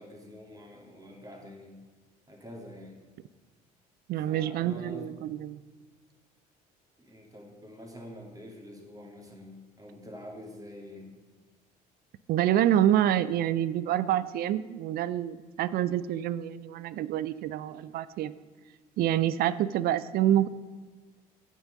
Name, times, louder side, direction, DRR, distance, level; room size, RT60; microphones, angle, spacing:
voice 1, 0.0-1.8 2.3-3.0 4.2-5.2 7.0-11.1, left 1 dB, 15° right, 0 dB, 2.6 m, -46 dB
voice 2, 4.1-5.6 12.3-18.3 19.0-20.5, right 11 dB, 50° right, 16 dB, 0.4 m, -27 dB
9.0 x 6.4 x 5.2 m, 1.4 s
hypercardioid pair, 60°, 20 cm